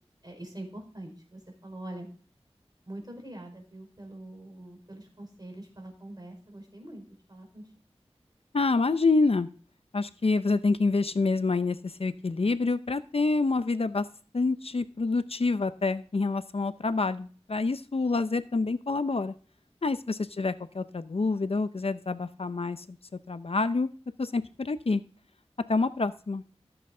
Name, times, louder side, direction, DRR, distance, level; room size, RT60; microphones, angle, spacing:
voice 1, 0.2-2.1 2.9-7.0 7.3-7.6, right 1 dB, 40° right, 2 dB, 4.5 m, -44 dB
voice 2, 8.5-9.5 9.9-14.0 14.3-19.3 19.8-23.0 23.3-23.9 24.2-25.0 25.7-26.4, left 3 dB, 65° left, 12 dB, 0.6 m, -27 dB
14.0 x 7.9 x 3.8 m, 0.40 s
wide cardioid pair, 40°, 11 cm